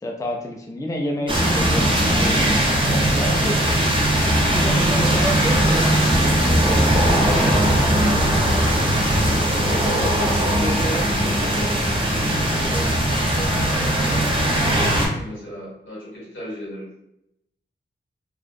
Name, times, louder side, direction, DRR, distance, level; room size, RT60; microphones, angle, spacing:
voice 1, 0.0-3.6 4.4-5.9 6.5-10.0, left 1 dB, 15° left, 0 dB, 0.3 m, -30 dB
sound 1, 1.3-15.1, right 1 dB, 25° right, 0.6 m, -19 dB
voice 2, 3.1-3.5 9.8-16.9, equal, 75° left, -7 dB, 1.4 m, -34 dB
2.4 x 2.0 x 2.5 m, 0.79 s
wide cardioid pair, 100°, 20 cm